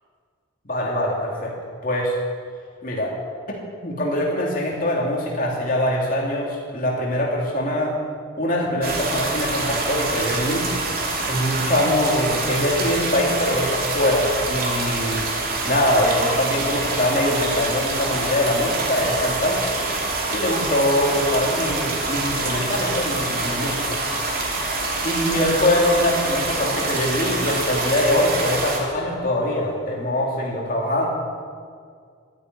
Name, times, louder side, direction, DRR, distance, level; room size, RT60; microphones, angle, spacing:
voice 1, 0.6-1.5 1.8-2.2 2.8-3.1 3.8-7.9 8.4-10.7 11.3-15.3 15.7-19.7 20.3-24.0 25.0-31.1, left 1 dB, 45° left, -3 dB, 2.9 m, -23 dB
sound 1, 8.8-28.8, right 2 dB, 45° right, 2.8 m, -26 dB
13.0 x 10.0 x 9.5 m, 2.1 s
head